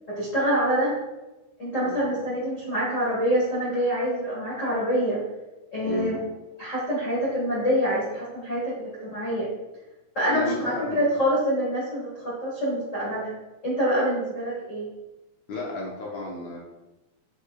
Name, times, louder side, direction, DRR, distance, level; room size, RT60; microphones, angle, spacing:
voice 1, 0.1-0.9 1.6-5.2 5.7-6.2 6.6-9.5 10.1-13.4 13.6-14.9, equal, 45° left, -8 dB, 1.0 m, -26 dB
voice 2, 10.3-11.1 15.5-16.6, left 2 dB, 70° left, -4 dB, 1.7 m, -33 dB
7.2 x 7.1 x 2.4 m, 1.0 s
omnidirectional pair, 4.4 m